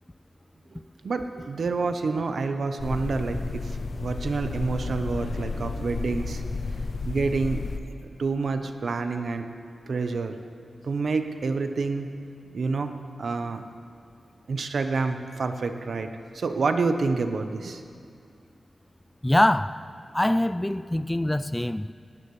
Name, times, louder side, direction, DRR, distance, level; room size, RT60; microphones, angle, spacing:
voice 1, 0.7-6.5 7.0-7.6 8.2-9.4 9.9-10.3 10.8-12.1 12.5-13.6 14.5-16.1 16.3-17.8, right 4 dB, 70° right, 0.9 m, -28 dB
sound 1, 2.8-7.8, left 3 dB, 65° left, 0.8 m, -32 dB
voice 2, 19.2-19.8 20.1-21.9, left 1 dB, 10° left, 0.3 m, -23 dB
18.0 x 18.0 x 3.3 m
wide cardioid pair, 100°, 0 cm